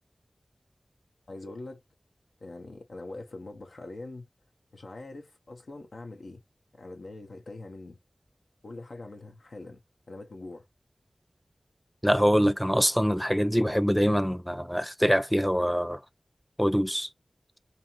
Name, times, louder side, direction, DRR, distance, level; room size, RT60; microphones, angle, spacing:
voice 1, 1.3-1.8 2.4-4.3 4.7-6.4 6.7-8.0 8.6-9.8 10.1-10.7, left 2 dB, 80° left, 0.6 m, -43 dB
voice 2, 12.0-16.0 16.6-17.1, equal, ahead, 0.3 m, -24 dB
2.7 x 2.5 x 2.8 m
cardioid pair, 45°, 0 cm